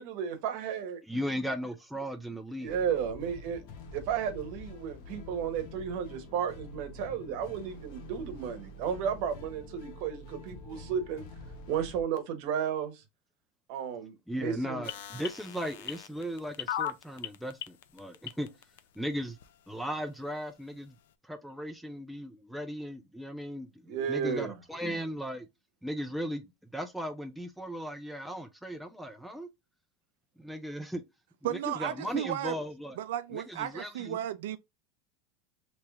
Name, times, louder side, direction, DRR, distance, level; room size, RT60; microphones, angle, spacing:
voice 1, 0.0-1.0 2.6-3.6 3.9-11.2 11.7-13.0 13.7-14.8 23.9-24.6, right 8 dB, 45° right, 0.9 m, -33 dB
voice 2, 1.1-2.8 14.3-18.5 19.0-19.4 19.7-21.0 21.3-25.5 25.8-26.4 26.7-29.5 30.4-31.0 31.4-33.0 33.3-34.2, equal, ahead, 0.3 m, -37 dB
sound 1, 2.6-12.0, left 1 dB, 55° left, 0.9 m, -47 dB
sound 2, 14.8-18.8 19.4-19.5, left 11 dB, 80° left, 0.4 m, -36 dB
voice 3, 31.4-32.6 33.0-34.6, right 12 dB, 80° right, 0.3 m, -34 dB
3.2 x 2.9 x 3.4 m
supercardioid pair, 175°, 0 cm